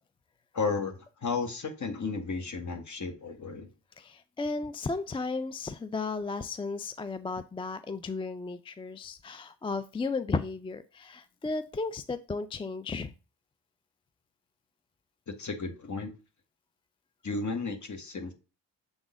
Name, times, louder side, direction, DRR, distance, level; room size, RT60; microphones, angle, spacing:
voice 1, 0.5-3.7 15.3-16.1 17.2-18.3, left 4 dB, 40° left, 1.6 m, -33 dB
voice 2, 4.0-13.1, left 3 dB, 15° left, 0.3 m, -34 dB
7.1 x 3.9 x 3.7 m
cardioid pair, 65°, 44 cm